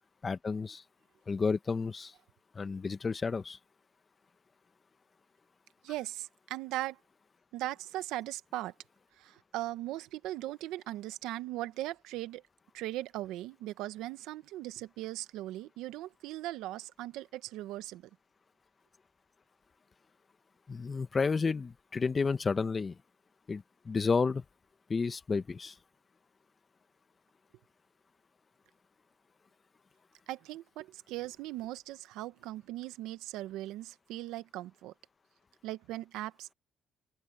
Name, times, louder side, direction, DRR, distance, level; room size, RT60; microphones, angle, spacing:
voice 1, 0.2-0.8 1.3-2.1 2.5-3.6 20.7-22.9 23.5-24.4 24.9-25.7, left 4 dB, 30° left, 1.4 m, -31 dB
voice 2, 5.8-7.0 7.5-8.7 9.2-12.4 12.7-18.1 30.3-34.9 35.6-36.5, right 15 dB, 80° right, 1.3 m, -39 dB
open air
supercardioid pair, 85°, 0 cm